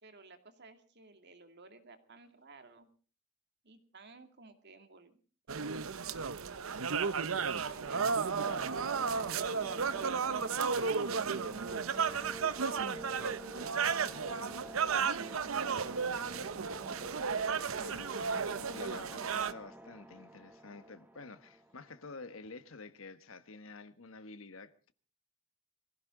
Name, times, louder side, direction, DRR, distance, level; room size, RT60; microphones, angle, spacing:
voice 1, 0.0-2.9 3.6-5.2 5.5-6.6 7.5-8.2 10.0-13.7 14.8-16.4, right 3 dB, 55° right, 2.5 m, -56 dB
sound 1, 5.5-19.5, right 5 dB, 75° right, 0.8 m, -34 dB
sound 2, 7.6-22.3, right 1 dB, 10° right, 1.2 m, -49 dB
voice 2, 17.8-24.9, left 3 dB, 70° left, 1.2 m, -50 dB
23.0 x 16.0 x 3.8 m
head